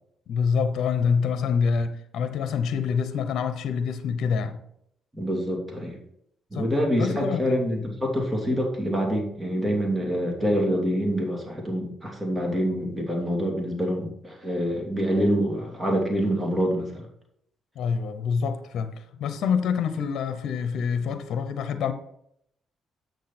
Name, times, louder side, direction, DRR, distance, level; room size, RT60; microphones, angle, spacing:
voice 1, 0.3-4.6 6.5-6.7 7.0-7.4 17.7-21.9, left 6 dB, 70° left, 0.8 m, -26 dB
voice 2, 5.1-6.0 6.5-17.1, equal, 15° right, 2.7 m, -26 dB
8.2 x 6.5 x 4.3 m
cardioid pair, 90°, 0 cm